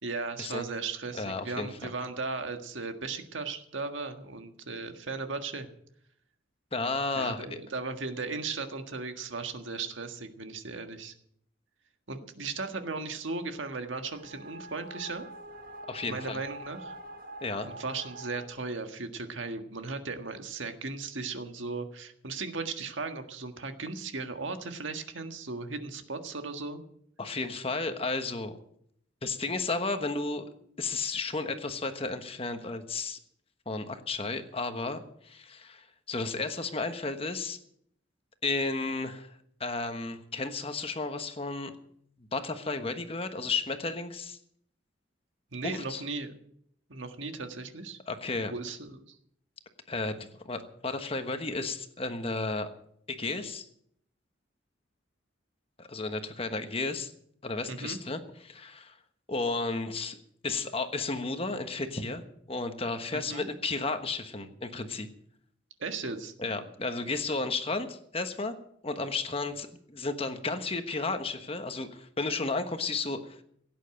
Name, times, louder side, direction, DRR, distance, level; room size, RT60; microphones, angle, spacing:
voice 1, 0.0-5.7 7.1-11.1 12.1-15.2 16.1-16.9 17.6-26.8 45.5-46.3 46.9-48.0 48.5-49.1 57.7-58.0 63.1-63.5 65.8-66.3, right 4 dB, 70° right, 6 dB, 1.6 m, -36 dB
voice 2, 1.1-1.9 6.7-7.5 15.9-16.4 17.4-17.7 27.2-28.6 29.2-30.4 30.8-33.2 33.7-37.6 38.4-39.3 39.6-41.7 42.3-44.4 45.6-46.0 48.1-48.5 49.9-52.7 53.1-53.7 55.8-57.1 57.4-59.0 59.3-60.2 60.4-62.2 62.5-65.1 66.4-68.5 68.8-73.4, left 3 dB, 30° left, 8 dB, 1.2 m, -33 dB
sound 1, 14.1-18.4, right 1 dB, 50° right, 1.5 m, -45 dB
17.0 x 9.3 x 7.8 m, 0.70 s
head